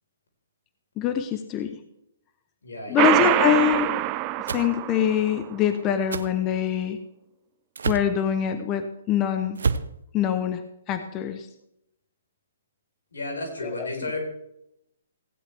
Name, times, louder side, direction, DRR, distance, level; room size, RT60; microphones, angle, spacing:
voice 1, 1.0-1.7 2.9-3.9 4.5-7.0 7.9-9.6 10.1-10.6 10.9-11.5 13.6-13.9, left 9 dB, 25° left, 8 dB, 0.8 m, -24 dB
voice 2, 2.6-3.4 13.1-14.2, left 2 dB, 85° left, 2 dB, 4.0 m, -33 dB
sound 1, 3.0-5.4, right 16 dB, 30° right, 0.4 m, -24 dB
sound 2, 4.5-4.7 6.1-6.3 7.7-8.1 9.5-9.9, right 5 dB, 80° right, 0.7 m, -27 dB
16.0 x 9.4 x 3.4 m, 0.81 s
hypercardioid pair, 145°, 0 cm